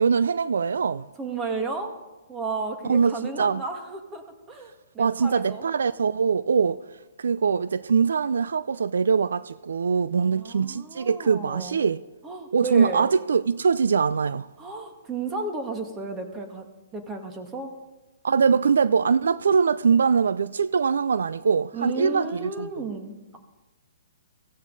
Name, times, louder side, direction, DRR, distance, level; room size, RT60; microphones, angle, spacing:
voice 1, 0.0-1.0 2.9-3.6 5.0-6.8 7.2-12.0 12.5-14.5 18.2-22.7, right 6 dB, 75° right, 0.4 m, -22 dB
voice 2, 1.2-1.9 2.3-5.6 10.1-11.8 12.2-13.1 14.6-16.7 16.9-17.7 21.7-23.4, right 3 dB, 15° right, 2.0 m, -33 dB
16.0 x 15.5 x 4.0 m
hypercardioid pair, 135°, 0 cm